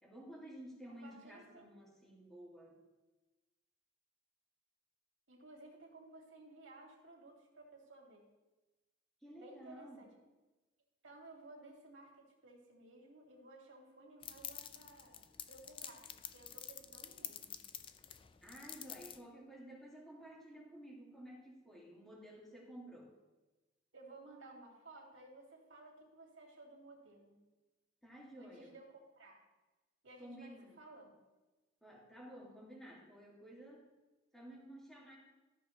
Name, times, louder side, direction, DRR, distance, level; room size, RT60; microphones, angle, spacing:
voice 1, 0.0-2.8 9.2-10.0 18.4-23.1 28.0-28.7 30.2-30.8 31.8-33.8 34.3-35.2, right 1 dB, ahead, -4 dB, 2.3 m, -53 dB
voice 2, 0.9-1.7 5.3-8.3 9.3-10.1 11.0-17.6 23.9-27.4 28.4-29.4 30.0-31.1, right 2 dB, 75° right, -1 dB, 2.5 m, -57 dB
sound 1, 14.2-19.2, left 9 dB, 25° left, 0.4 m, -49 dB
13.5 x 6.8 x 3.2 m, 1.1 s
head